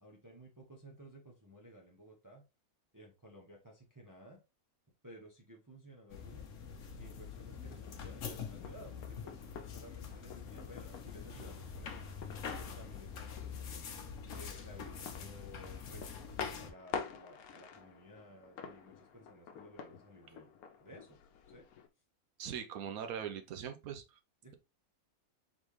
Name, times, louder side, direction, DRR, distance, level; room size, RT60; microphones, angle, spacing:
voice 1, 0.0-2.4 2.9-4.4 5.0-6.5 6.9-12.0 12.6-13.9 14.3-20.5 20.8-21.2 21.5-21.7 24.4-24.5, equal, 15° right, 0.8 m, -55 dB
sound 1, 6.1-16.7, left 6 dB, 65° left, 1.2 m, -45 dB
sound 2, 7.0-21.9, left 6 dB, 85° left, 1.2 m, -49 dB
voice 2, 22.4-24.2, right 8 dB, 80° right, 1.2 m, -41 dB
4.2 x 3.6 x 3.1 m
omnidirectional pair, 1.5 m